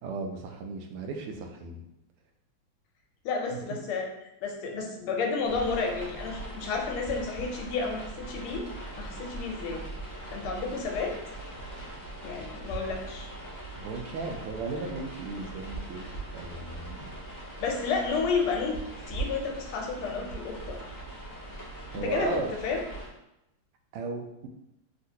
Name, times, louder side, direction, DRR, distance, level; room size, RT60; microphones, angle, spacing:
voice 1, 0.0-1.9 3.5-3.8 13.7-17.1 21.9-22.5 23.9-24.5, right 4 dB, 85° right, 4 dB, 1.5 m, -36 dB
voice 2, 3.2-4.1 4.4-8.6 9.0-9.8 10.3-11.2 12.2-13.3 17.6-18.8 19.1-20.8 21.9-22.8, left 4 dB, 80° left, 2 dB, 1.5 m, -31 dB
sound 1, 5.4-23.1, right 2 dB, 20° left, 0.5 m, -40 dB
3.7 x 2.4 x 2.7 m, 0.87 s
omnidirectional pair, 2.4 m